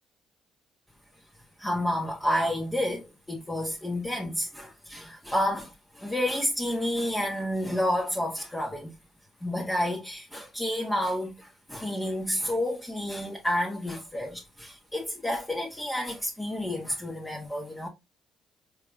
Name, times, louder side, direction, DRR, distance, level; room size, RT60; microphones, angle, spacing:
voice 1, 1.6-8.9 9.4-17.9, left 1 dB, 10° left, 1.5 m, -30 dB
4.8 x 4.4 x 2.4 m
hypercardioid pair, 45°, 0 cm